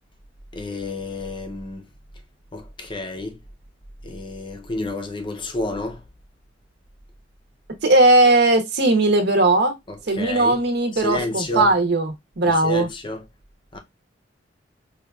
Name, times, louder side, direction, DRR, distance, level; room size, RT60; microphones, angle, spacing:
voice 1, 0.5-1.8 2.5-3.4 4.0-6.0 9.9-10.6 10.9-11.7 12.4-13.2 13.7-13.8, left 2 dB, 25° left, 0.6 m, -30 dB
voice 2, 7.8-9.8 10.1-12.9, right 2 dB, 60° right, 0.8 m, -18 dB
4.8 x 2.4 x 2.3 m
head